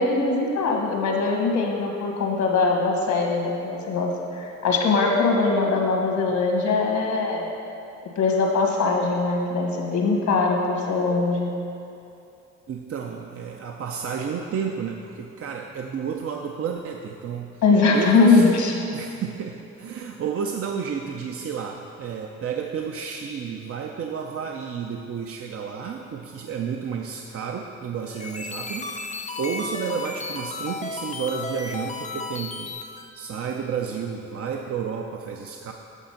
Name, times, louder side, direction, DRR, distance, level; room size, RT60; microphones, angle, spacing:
voice 1, 0.0-7.5 8.0-11.5 17.6-18.7, left 3 dB, 75° left, 1 dB, 1.5 m, -21 dB
voice 2, 12.7-17.5 17.9-18.6 18.9-35.7, right 6 dB, 50° right, 2 dB, 0.6 m, -31 dB
sound 1, 28.1-33.1, left 3 dB, 25° left, 0.5 m, -34 dB
8.2 x 6.0 x 5.8 m, 2.7 s
cardioid pair, 85°, 29 cm